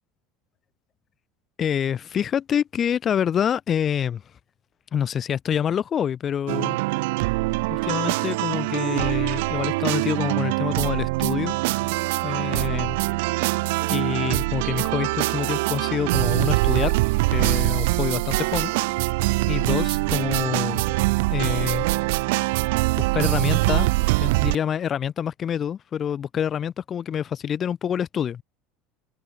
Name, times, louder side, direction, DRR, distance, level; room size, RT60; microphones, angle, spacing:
voice 1, 1.6-4.2 4.9-6.8 7.7-11.6 11.8-11.9 12.2-13.0 13.9-16.9 17.3-19.0 19.5-21.0 21.3-21.9 23.0-23.9 24.2-28.4, left 8 dB, 35° left, 4.1 m, -27 dB
sound 1, 6.5-24.6, right 23 dB, 80° right, 0.7 m, -23 dB
open air
supercardioid pair, 105°, 0 cm